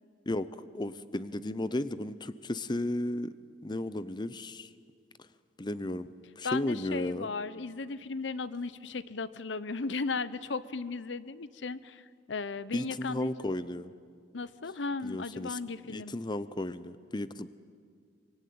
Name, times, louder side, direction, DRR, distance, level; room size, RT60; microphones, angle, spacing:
voice 1, 0.7-3.3 3.6-4.7 5.6-6.1 6.4-7.3 12.7-13.9 15.0-15.6 15.9-17.5, left 1 dB, 25° left, 14 dB, 0.7 m, -34 dB
voice 2, 6.4-13.5 14.3-16.1, left 4 dB, 75° left, 16 dB, 0.9 m, -36 dB
25.5 x 24.0 x 9.5 m, 2.2 s
head